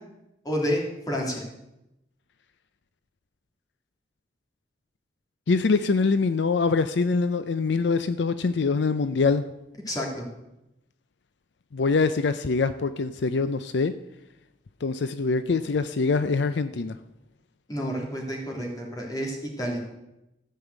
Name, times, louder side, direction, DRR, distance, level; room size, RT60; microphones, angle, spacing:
voice 1, 0.4-1.4 9.9-10.2 17.7-19.8, equal, 20° left, -1 dB, 3.0 m, -29 dB
voice 2, 5.5-9.4 11.7-13.9 14.8-17.0, left 4 dB, 75° left, 11 dB, 0.5 m, -24 dB
14.0 x 5.6 x 8.1 m, 0.89 s
head